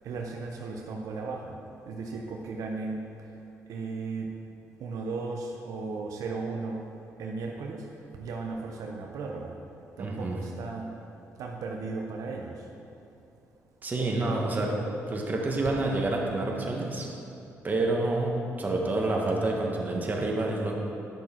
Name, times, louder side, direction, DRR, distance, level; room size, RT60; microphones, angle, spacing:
voice 1, 0.0-1.6 1.9-3.0 3.7-4.3 4.8-6.8 7.2-7.8 8.2-9.6 10.0-10.9 11.4-12.6, right 3 dB, 80° right, 0 dB, 0.8 m, -35 dB
voice 2, 10.0-10.3 13.8-14.7 15.1-17.1 17.6-20.8, right 2 dB, 30° right, -1 dB, 1.5 m, -28 dB
10.5 x 6.3 x 4.5 m, 2.8 s
cardioid pair, 100°, 6 cm